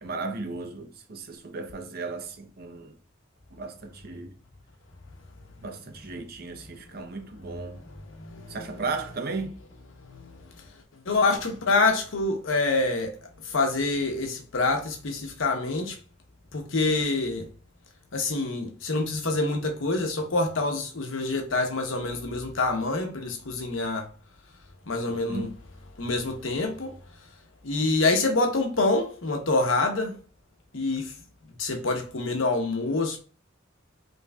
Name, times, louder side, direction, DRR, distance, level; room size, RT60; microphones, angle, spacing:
voice 1, 0.0-2.9 3.5-4.3 5.6-7.8 8.5-9.6 25.1-25.5, right 3 dB, 50° right, 0.7 m, -35 dB
voice 2, 7.8-8.8 10.0-13.2 13.4-16.0 16.5-17.5 18.1-24.1 24.9-25.5 26.0-26.9 27.6-30.2 30.7-31.1 31.6-33.2, left 3 dB, 85° left, 0.9 m, -26 dB
5.2 x 3.2 x 2.3 m
head